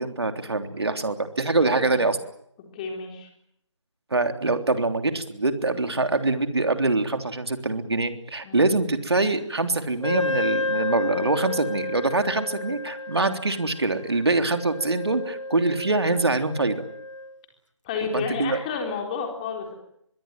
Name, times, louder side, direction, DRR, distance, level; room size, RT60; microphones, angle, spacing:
voice 1, 0.0-2.2 4.1-16.8 18.0-18.6, right 2 dB, 55° right, 7 dB, 3.4 m, -24 dB
voice 2, 1.6-2.0 2.6-3.3 8.4-8.6 17.8-19.7, left 5 dB, 15° left, 3 dB, 4.0 m, -31 dB
Wind instrument woodwind instrument, 10.0-17.4, left 2 dB, 75° left, 2.0 m, -31 dB
24.5 x 22.5 x 9.2 m, 0.75 s
figure-of-eight pair, 155°, 16 cm